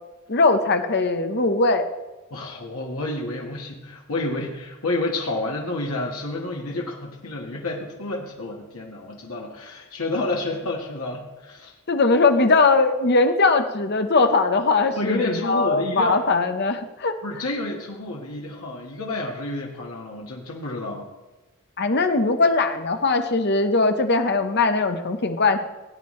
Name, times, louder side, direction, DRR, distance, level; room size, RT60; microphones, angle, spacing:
voice 1, 0.3-1.9 11.9-17.2 21.8-25.6, left 3 dB, 50° left, 7 dB, 0.9 m, -20 dB
voice 2, 2.3-11.7 14.9-16.2 17.2-21.1, left 2 dB, 90° left, -1 dB, 1.6 m, -29 dB
18.0 x 9.0 x 3.2 m, 1.1 s
head